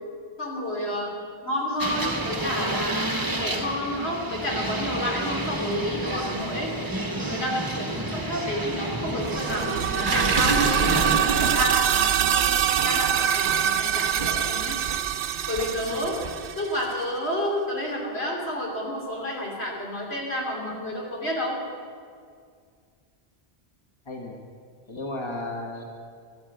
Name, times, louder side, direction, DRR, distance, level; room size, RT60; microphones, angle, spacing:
voice 1, 0.4-1.2 1.4-6.7 7.2-14.8 15.5-16.2 16.6-21.6, left 1 dB, 65° left, -1 dB, 3.3 m, -30 dB
sound 1, 1.8-11.2, right 1 dB, 20° right, 1.0 m, -30 dB
sound 2, 9.2-17.0, right 9 dB, 75° right, 0.8 m, -25 dB
sound 3, 10.1-16.5, right 4 dB, 50° right, 1.2 m, -30 dB
voice 2, 24.0-24.4 24.9-25.8, left 2 dB, 25° left, 1 dB, 1.4 m, -34 dB
13.0 x 11.0 x 7.8 m, 2.1 s
omnidirectional pair, 1.1 m